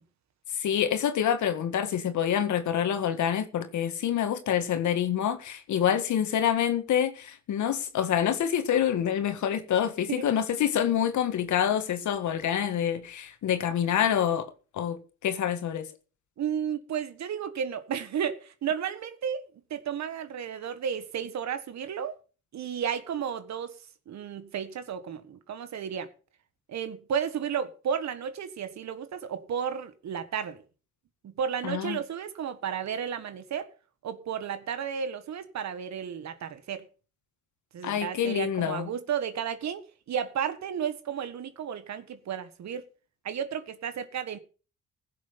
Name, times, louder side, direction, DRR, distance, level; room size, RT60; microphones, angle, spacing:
voice 1, 0.5-14.5 14.7-15.9 31.6-32.0 37.8-38.9, left 9 dB, 70° left, 1.9 m, -27 dB
voice 2, 16.4-19.4 19.7-22.1 22.5-23.7 24.1-26.1 26.7-30.6 31.2-33.7 34.0-36.9 37.7-39.8 40.1-42.9 43.2-44.4, right 8 dB, 65° right, 1.6 m, -33 dB
16.0 x 7.4 x 5.6 m
cardioid pair, 90°, 30 cm